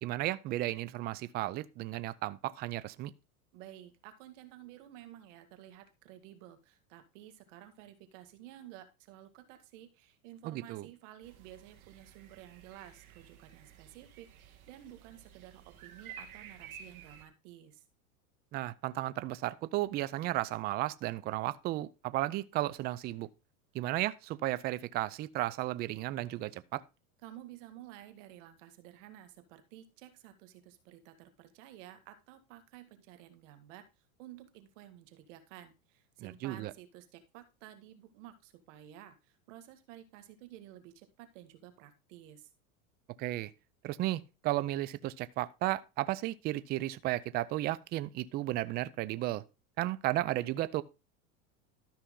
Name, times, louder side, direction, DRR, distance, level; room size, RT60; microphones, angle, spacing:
voice 1, 0.0-3.1 10.4-10.9 18.5-23.3 23.7-26.8 36.2-36.7 43.2-43.5 43.8-49.4 49.8-50.8, right 16 dB, 25° right, 0.4 m, -34 dB
voice 2, 3.5-17.8 27.2-33.9 34.2-39.2 39.5-42.5, right 12 dB, 60° right, 1.9 m, -52 dB
sound 1, 11.2-17.3, right 8 dB, 80° right, 2.3 m, -53 dB
13.0 x 5.7 x 3.8 m
supercardioid pair, 125°, 42 cm